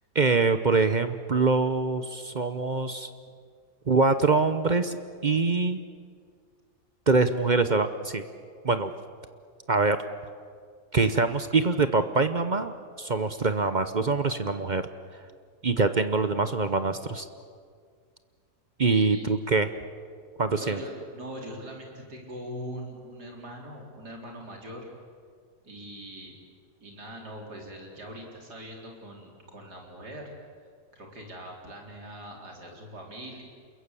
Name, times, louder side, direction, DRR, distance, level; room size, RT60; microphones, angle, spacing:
voice 1, 0.1-3.1 3.9-5.0 5.2-5.8 7.1-8.2 8.6-8.9 9.7-10.0 10.9-14.8 15.6-17.3 18.8-19.7 20.4-20.8, right 4 dB, 40° right, 10 dB, 0.7 m, -24 dB
voice 2, 18.8-19.3 20.5-24.9 25.6-26.3 26.8-30.3 30.9-33.4, equal, 80° right, 0 dB, 4.8 m, -41 dB
27.5 x 22.0 x 8.4 m, 2.1 s
omnidirectional pair, 1.7 m